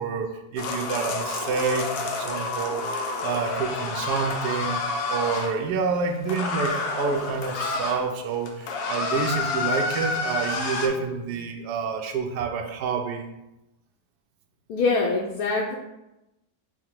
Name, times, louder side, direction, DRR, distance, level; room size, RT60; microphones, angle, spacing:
voice 1, 0.0-2.8 3.2-4.8 5.1-13.3, right 5 dB, 75° right, 4 dB, 1.1 m, -28 dB
sound 1, 0.6-5.5 6.3-8.0 8.3-10.9, left 3 dB, 90° left, 1.3 m, -29 dB
voice 2, 14.7-15.8, left 3 dB, 70° left, -3 dB, 1.0 m, -24 dB
4.8 x 2.1 x 4.4 m, 0.93 s
omnidirectional pair, 1.8 m